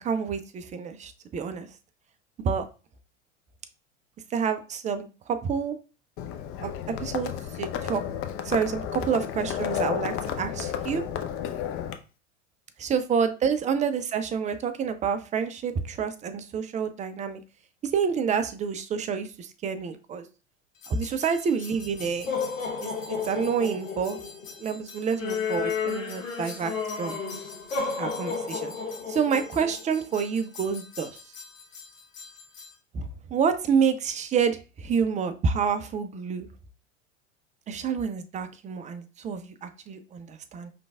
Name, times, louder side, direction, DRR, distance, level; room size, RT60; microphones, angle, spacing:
voice 1, 0.0-1.7 2.4-2.6 4.3-5.8 6.6-7.3 7.6-8.0 8.4-11.0 12.8-17.4 17.8-20.2 20.9-22.3 22.8-24.2 24.6-26.7 27.0-27.2 28.0-28.7 29.1-31.1 32.9-36.5 37.7-40.7, right 6 dB, 20° right, 9 dB, 0.4 m, -28 dB
Livestock farm animals working animals, 6.2-11.9, left 9 dB, 35° left, 0.6 m, -32 dB
sound 1, 20.8-32.7, left 5 dB, 90° left, 0.9 m, -34 dB
5.1 x 3.3 x 2.3 m, 0.32 s
hypercardioid pair, 85°, 38 cm